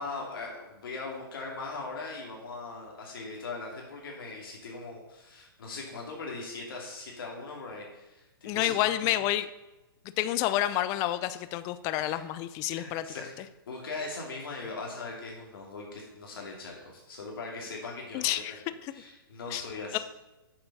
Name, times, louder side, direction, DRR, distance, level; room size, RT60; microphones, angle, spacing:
voice 1, 0.0-8.9 11.9-12.2 12.7-13.3 13.7-18.6 18.9-20.0, left 3 dB, 70° left, -1 dB, 2.6 m, -40 dB
voice 2, 8.5-9.5 10.2-13.0 18.1-18.9 19.5-19.6 19.9-20.0, left 14 dB, 25° left, 13 dB, 0.5 m, -29 dB
7.6 x 7.0 x 5.5 m, 1.1 s
hypercardioid pair, 145°, 12 cm